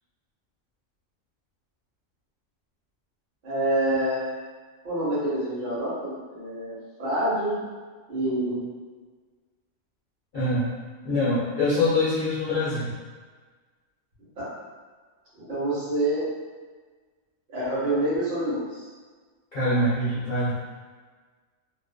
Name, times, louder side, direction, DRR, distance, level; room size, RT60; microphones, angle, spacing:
voice 1, 3.4-4.3 4.8-6.7 7.0-7.6 8.1-8.6 14.4-14.5 15.4-16.3 17.5-18.9, right 1 dB, 45° right, -11 dB, 1.1 m, -27 dB
voice 2, 10.3-10.7 11.0-13.0 19.5-20.6, left 1 dB, 50° left, -12 dB, 0.8 m, -24 dB
2.6 x 2.5 x 2.2 m, 1.5 s
omnidirectional pair, 1.4 m